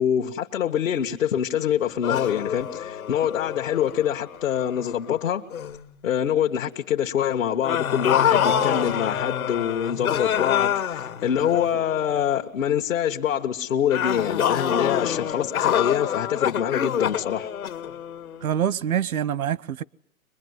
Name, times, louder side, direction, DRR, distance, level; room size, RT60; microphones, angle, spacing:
voice 1, 0.0-5.5 6.0-17.5, left 9 dB, 65° left, 1.4 m, -25 dB
sound 1, 2.0-5.1 5.5-5.8 7.6-12.2 13.9-18.5, left 9 dB, 85° left, 2.0 m, -26 dB
voice 2, 18.4-19.8, right 9 dB, 90° right, 0.9 m, -25 dB
23.5 x 21.5 x 9.5 m
hypercardioid pair, 160°, 42 cm